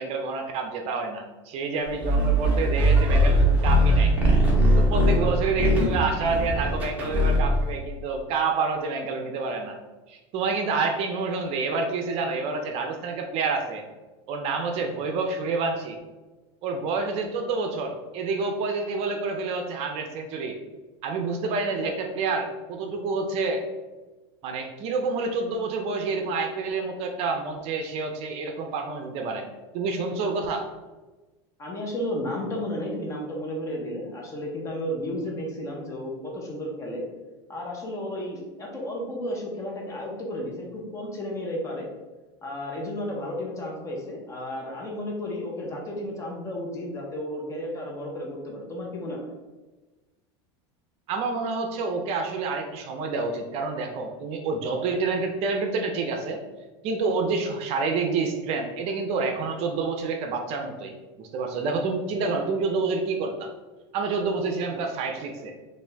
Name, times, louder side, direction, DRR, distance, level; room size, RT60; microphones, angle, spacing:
voice 1, 0.0-4.1 4.7-9.8 10.1-13.8 14.3-16.0 16.6-20.6 21.0-23.6 24.4-29.4 29.7-30.6 51.1-56.4 56.8-60.9 61.2-63.5 63.9-65.5, right 4 dB, 50° right, 4 dB, 0.5 m, -28 dB
sound 1, 2.0-7.7, equal, 10° right, 1.1 m, -21 dB
voice 2, 31.6-37.0 37.5-41.9 42.4-49.3, left 1 dB, 20° left, -1 dB, 1.0 m, -33 dB
4.2 x 2.6 x 3.4 m, 1.2 s
supercardioid pair, 135°, 14 cm